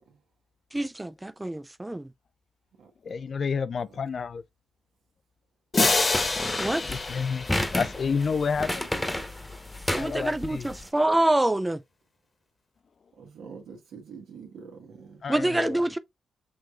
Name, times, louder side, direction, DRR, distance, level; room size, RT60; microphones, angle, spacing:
voice 1, 0.7-2.1 6.6-6.8 9.9-11.8 15.3-16.0, right 1 dB, 15° right, 0.4 m, -26 dB
voice 2, 3.0-4.4 6.7-8.9 9.9-10.7 15.2-15.8, left 5 dB, 60° left, 0.3 m, -30 dB
sound 1, 5.7-8.6, left 3 dB, 40° left, 1.1 m, -27 dB
sound 2, 5.8-10.8, left 1 dB, 15° left, 1.0 m, -32 dB
voice 3, 13.2-15.2, right 6 dB, 80° right, 1.3 m, -45 dB
6.0 x 3.1 x 2.4 m
supercardioid pair, 40°, 0 cm